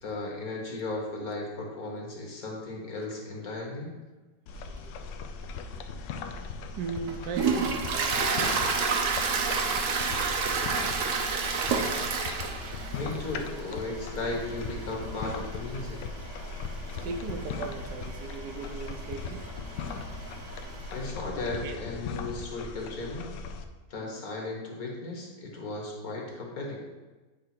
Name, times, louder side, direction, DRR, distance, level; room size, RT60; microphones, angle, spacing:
voice 1, 0.0-4.0 12.9-16.2 20.9-23.3 23.9-26.8, left 2 dB, 55° left, -1 dB, 1.8 m, -36 dB
sound 1, 4.5-23.6, left 4 dB, 90° left, 1.3 m, -39 dB
voice 2, 4.5-4.9 5.4-5.8 6.8-11.8 13.1-13.2 16.5-21.8, right 5 dB, 75° right, 6 dB, 1.3 m, -41 dB
Tap, 5.7-20.6, left 7 dB, 75° left, 0.7 m, -48 dB
Toilet flush, 6.3-21.1, right 5 dB, 55° right, 1.0 m, -32 dB
8.5 x 3.3 x 5.9 m, 1.2 s
omnidirectional pair, 1.9 m